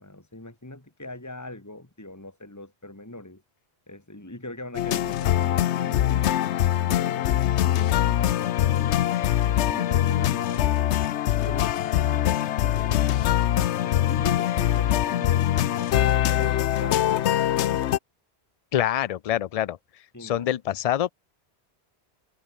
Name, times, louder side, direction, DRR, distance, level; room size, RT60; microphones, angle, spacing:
voice 1, 0.0-3.4 3.9-10.8 11.5-13.1 13.6-17.1 20.1-20.5, left 1 dB, 15° left, 2.3 m, -41 dB
sound 1, 4.7-18.0, left 12 dB, 85° left, 0.9 m, -23 dB
voice 2, 18.7-19.8 20.2-21.1, left 11 dB, 60° left, 0.4 m, -25 dB
omnidirectional pair, 1.1 m